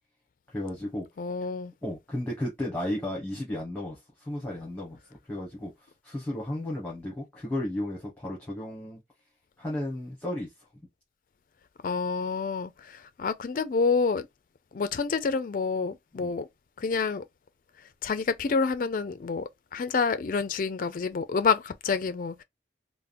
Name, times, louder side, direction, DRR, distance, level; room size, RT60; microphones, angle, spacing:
voice 1, 0.5-1.1 1.8-5.0 5.3-5.7 6.0-9.0 9.6-10.5 16.2-16.3, left 1 dB, 10° left, 1.2 m, -33 dB
voice 2, 1.2-1.7 11.8-14.3 14.7-16.5 16.8-17.2 18.0-22.4, left 5 dB, 50° left, 0.4 m, -28 dB
3.5 x 2.1 x 2.5 m
head